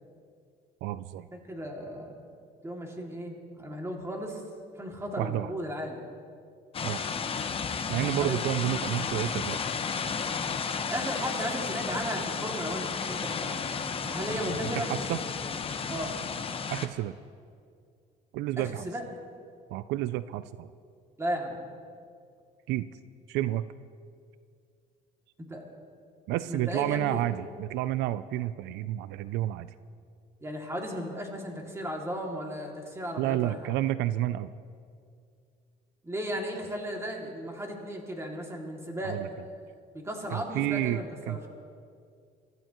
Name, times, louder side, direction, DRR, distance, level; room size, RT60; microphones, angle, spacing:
voice 1, 0.8-1.3 5.2-5.5 6.8-7.0 7.9-9.6 14.8-15.2 16.7-17.1 18.3-18.9 19.7-20.7 22.7-22.9 23.3-23.6 26.3-29.7 33.2-34.5 39.0-39.3 40.3-41.0 41.3-41.5, right 14 dB, 90° right, 15 dB, 0.4 m, -30 dB
voice 2, 1.3-2.1 2.6-4.4 4.8-6.0 8.2-8.4 10.4-10.5 10.9-14.9 15.9-16.2 18.6-19.0 21.2-21.6 25.4-25.6 26.5-27.2 30.4-33.7 36.0-39.6 39.9-41.4, equal, 15° right, 0 dB, 2.4 m, -35 dB
sound 1, 6.7-16.9, left 6 dB, 35° left, 0.9 m, -33 dB
23.5 x 13.5 x 3.0 m, 2.3 s
cardioid pair, 110°, 17 cm